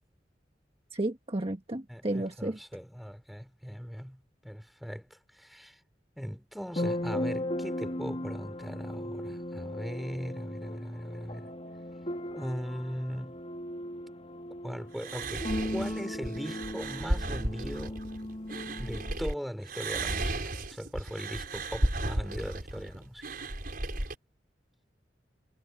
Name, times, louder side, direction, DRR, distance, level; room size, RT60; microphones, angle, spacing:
voice 1, 0.9-2.6, right 1 dB, 35° right, 1.5 m, -32 dB
voice 2, 1.9-5.8 6.2-11.5 12.3-13.4 14.6-18.0 18.8-23.2, equal, ahead, 4.0 m, -39 dB
sound 1, 6.7-19.3, left 1 dB, 35° left, 3.5 m, -37 dB
sound 2, 15.0-19.3 19.7-24.2, right 1 dB, 55° right, 5.4 m, -34 dB
head